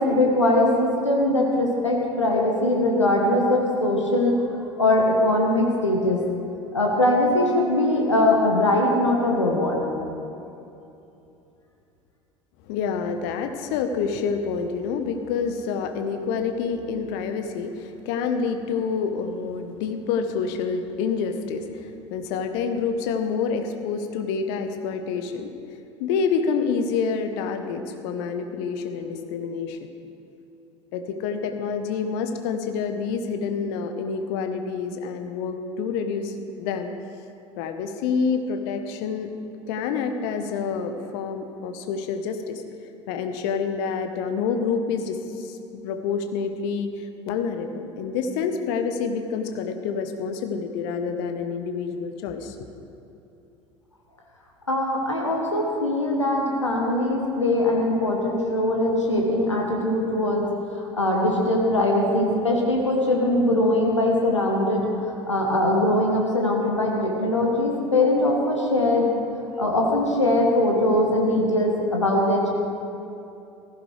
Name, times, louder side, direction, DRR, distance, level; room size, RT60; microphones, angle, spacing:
voice 1, 0.0-4.4 4.8-6.2 6.7-9.8 54.7-60.4 60.7-69.1 69.6-72.5, left 1 dB, 90° left, -1 dB, 1.3 m, -21 dB
voice 2, 12.7-25.5 26.0-29.8 30.9-36.9 37.6-39.3 39.7-42.6 43.1-52.5, left 5 dB, 60° left, 7 dB, 1.1 m, -28 dB
17.0 x 15.0 x 3.3 m, 2.8 s
figure-of-eight pair, 65°, 15 cm